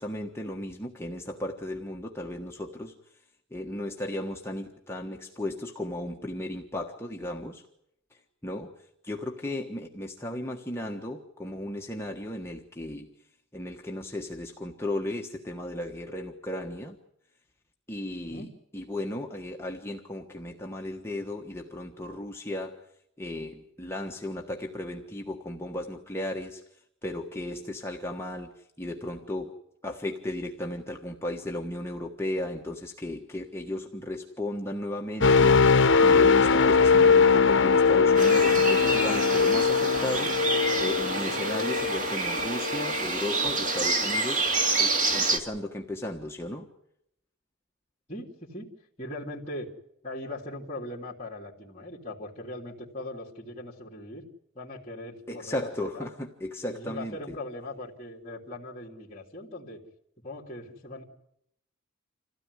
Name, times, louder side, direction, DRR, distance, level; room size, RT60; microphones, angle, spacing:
voice 1, 0.0-3.2 3.5-7.7 8.1-13.1 13.5-17.0 17.9-18.5 18.7-22.9 23.2-29.5 29.8-46.7 55.3-57.4, left 1 dB, 10° left, 1 dB, 1.3 m, -35 dB
sound 1, 35.2-43.0 43.5-43.7, left 5 dB, 55° left, 1.1 m, -21 dB
sound 2, 38.2-45.4, right 3 dB, 35° right, 2.3 m, -28 dB
voice 2, 48.1-48.7 49.0-49.7 50.0-54.3 54.5-56.1 56.7-59.8 60.2-61.0, left 1 dB, 30° left, -6 dB, 3.1 m, -40 dB
27.0 x 16.0 x 9.8 m, 0.79 s
head